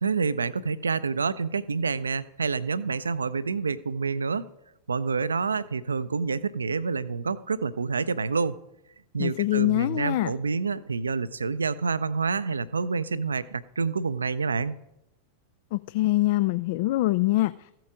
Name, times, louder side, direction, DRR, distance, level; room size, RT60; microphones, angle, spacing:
voice 1, 0.0-4.4 4.9-8.6 9.1-14.8, right 4 dB, 75° right, 17 dB, 0.5 m, -28 dB
voice 2, 9.2-10.3 15.7-17.7, left 17 dB, 50° left, 15 dB, 0.3 m, -24 dB
15.0 x 7.6 x 5.0 m, 0.82 s
figure-of-eight pair, 90°, 0 cm